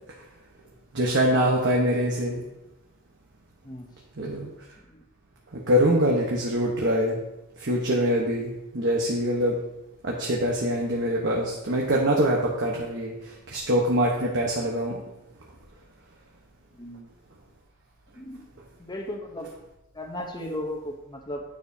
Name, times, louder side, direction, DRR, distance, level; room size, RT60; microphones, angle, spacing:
voice 1, 0.9-2.4 4.2-4.5 5.5-7.2 7.6-9.6 10.0-15.0, equal, 55° right, -2 dB, 1.1 m, -24 dB
voice 2, 16.7-17.1 18.1-18.5 18.8-19.5 19.9-21.4, left 1 dB, 20° left, 1 dB, 0.8 m, -36 dB
9.8 x 6.6 x 2.8 m, 0.91 s
head